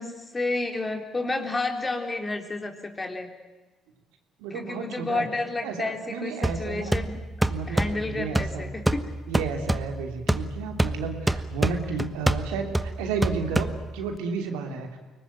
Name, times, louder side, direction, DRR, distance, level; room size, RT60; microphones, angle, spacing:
voice 1, 0.0-3.3 4.5-7.2 7.7-9.1, left 2 dB, 25° left, 4 dB, 3.8 m, -31 dB
voice 2, 4.4-5.2 5.6-7.0 7.5-8.7 9.3-15.0, right 5 dB, 85° right, 4 dB, 2.9 m, -32 dB
sound 1, 6.4-14.2, right 1 dB, 10° right, 1.2 m, -28 dB
23.0 x 19.5 x 9.1 m, 1.2 s
supercardioid pair, 65°, 0 cm